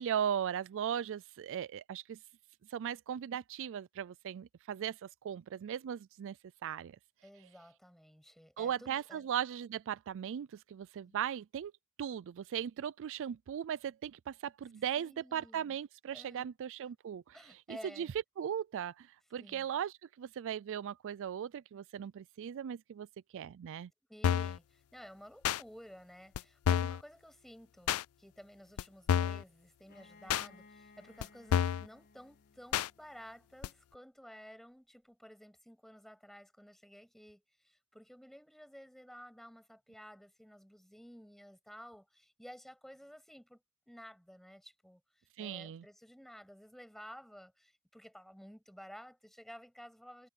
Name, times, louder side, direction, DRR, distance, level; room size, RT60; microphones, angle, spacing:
voice 1, 0.0-2.2 2.7-6.4 6.6-7.0 8.6-11.7 12.0-18.1 18.4-23.1 23.3-23.9 45.4-45.8, right 9 dB, 60° right, 0.3 m, -38 dB
voice 2, 7.2-9.3 11.1-11.2 15.0-15.8 16.1-16.5 17.3-18.1 19.4-19.7 24.1-43.6 43.9-45.0 45.4-50.3, equal, ahead, 7.7 m, -54 dB
sound 1, 24.2-24.6 25.4-25.6 26.3-26.4 26.6-27.0 27.9-28.0 28.8-28.9 29.1-29.4 30.3-30.5 31.2-31.3 31.5-31.9 32.7-32.9 33.6-33.7, left 8 dB, 75° left, 0.3 m, -29 dB
Bowed string instrument, 29.9-33.5, left 3 dB, 50° left, 4.9 m, -61 dB
head